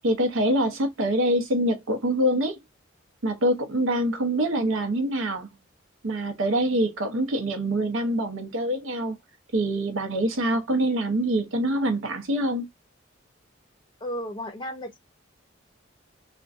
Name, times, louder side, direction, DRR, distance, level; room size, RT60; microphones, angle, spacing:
voice 1, 0.0-2.6 3.2-5.5 6.0-9.2 9.5-12.7, right 1 dB, 90° right, 0.7 m, -25 dB
voice 2, 14.0-15.0, equal, 25° left, 0.6 m, -34 dB
2.5 x 2.2 x 2.4 m
head